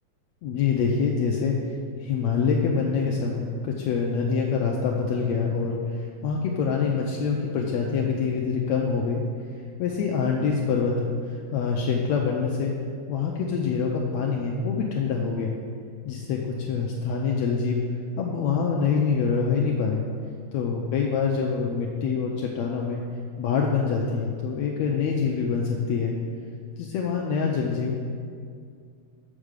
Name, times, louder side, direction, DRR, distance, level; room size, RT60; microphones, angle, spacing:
voice 1, 0.4-1.6 2.0-9.2 9.8-11.1 11.5-12.7 13.1-15.5 16.1-17.8 18.2-20.0 20.5-23.0 23.4-26.2 26.8-28.0, left 5 dB, 75° left, -1 dB, 1.7 m, -25 dB
7.4 x 4.9 x 6.4 m, 2.3 s
omnidirectional pair, 3.5 m